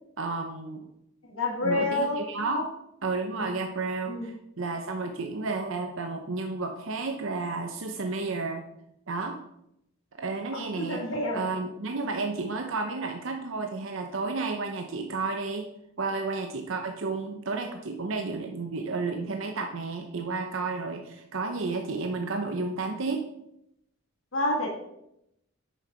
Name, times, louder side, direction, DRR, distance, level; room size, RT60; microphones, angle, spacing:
voice 1, 0.2-0.9 1.6-2.6 3.0-8.7 9.1-9.4 10.2-11.0 11.3-15.7 16.0-23.3, right 3 dB, 65° right, 4 dB, 0.8 m, -32 dB
voice 2, 1.2-2.6 4.1-4.3 10.5-11.5 24.3-24.7, left 1 dB, 80° left, -1 dB, 2.2 m, -29 dB
8.9 x 6.3 x 4.4 m, 0.81 s
head